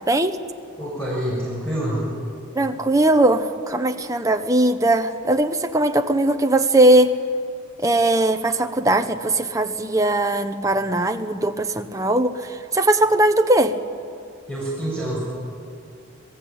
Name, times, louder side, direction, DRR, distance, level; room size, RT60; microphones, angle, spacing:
voice 1, 0.1-0.4 2.5-7.2 7.8-13.7, right 1 dB, 15° right, 6 dB, 1.1 m, -19 dB
voice 2, 0.8-2.1 14.5-15.2, right 1 dB, 5° left, -6 dB, 6.9 m, -26 dB
29.0 x 20.5 x 8.9 m, 2.4 s
head